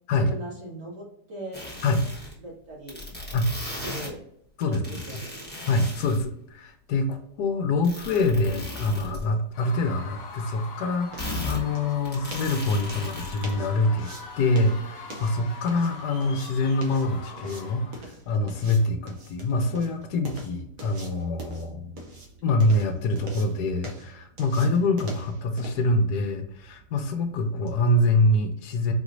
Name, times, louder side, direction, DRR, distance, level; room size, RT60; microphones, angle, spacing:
voice 1, 0.1-1.6 2.4-3.0 3.8-4.2 4.7-5.4, right 1 dB, 75° right, -7 dB, 2.4 m, -39 dB
sound 1, 1.5-2.3 2.9-4.1 4.6-6.2 7.8-9.2 9.7-9.8 10.1-10.2 11.2-11.6 12.0-13.5, left 2 dB, 5° left, 1.0 m, -36 dB
voice 2, 5.7-22.0 22.4-28.9, left 2 dB, 75° left, 6 dB, 1.1 m, -25 dB
Screaming / Cheering / Crowd, 9.5-18.1, left 3 dB, 90° left, 0.5 m, -42 dB
sound 2, 10.6-27.8, right 1 dB, 60° right, 1.1 m, -45 dB
4.4 x 3.0 x 2.5 m, 0.71 s
omnidirectional pair, 1.8 m